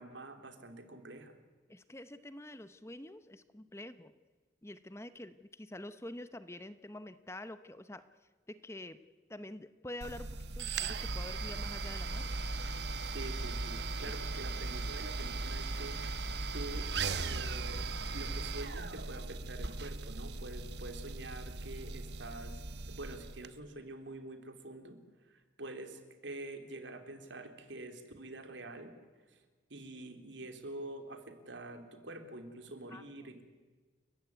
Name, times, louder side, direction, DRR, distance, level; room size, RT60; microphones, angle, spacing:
voice 1, 0.0-1.3 13.0-16.0 16.5-16.9 17.1-25.0 25.3-28.9 29.3-29.4 29.7-33.5, right 2 dB, 80° right, 7 dB, 3.1 m, -46 dB
voice 2, 1.7-4.1 4.6-8.0 8.5-9.0 9.3-12.2 32.9-33.0, left 1 dB, 15° left, 12 dB, 0.8 m, -47 dB
sound 1, 10.0-23.5, right 3 dB, 65° right, 1.1 m, -38 dB
30.0 x 15.0 x 9.5 m, 1.4 s
head